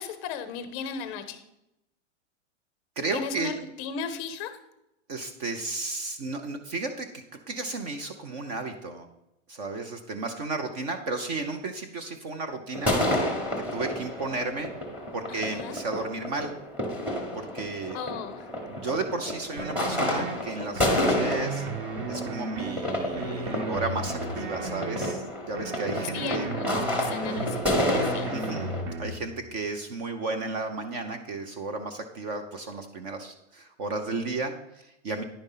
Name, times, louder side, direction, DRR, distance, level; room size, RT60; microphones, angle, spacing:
voice 1, 0.0-1.4 3.1-4.5 15.3-15.8 17.9-18.5 26.1-28.3, left 6 dB, 25° left, 10 dB, 0.6 m, -36 dB
voice 2, 3.0-3.6 5.1-7.1 7.5-9.1 9.5-12.9 13.7-14.7 15.1-16.5 17.4-18.0 18.7-21.6 22.1-26.5 28.3-28.7 29.0-35.2, right 3 dB, 35° right, 6 dB, 0.7 m, -33 dB
sound 1, 12.7-28.8, left 1 dB, 5° right, 1.1 m, -30 dB
sound 2, 19.6-20.3 20.8-22.8 23.2-25.1 25.6-27.6 28.0-29.2, right 3 dB, 65° right, 1.5 m, -35 dB
10.0 x 5.2 x 5.5 m, 0.88 s
supercardioid pair, 170°, 37 cm